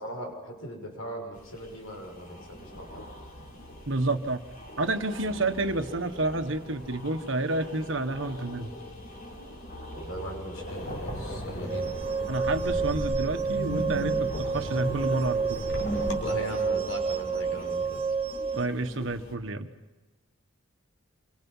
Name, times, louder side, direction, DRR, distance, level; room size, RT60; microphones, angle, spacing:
voice 1, 0.0-3.1 9.9-11.9 16.1-18.0, equal, 85° left, 2 dB, 6.6 m, -38 dB
sound 1, 1.3-19.3, equal, 40° left, 4.0 m, -43 dB
voice 2, 3.9-4.4 4.8-8.7 12.3-15.6 18.5-19.7, right 2 dB, 60° right, 7 dB, 1.5 m, -29 dB
Wind, 10.7-16.2, equal, 60° left, 5.0 m, -35 dB
sound 2, 11.7-18.7, right 5 dB, 30° right, 0.7 m, -30 dB
27.5 x 25.0 x 5.7 m, 1.2 s
head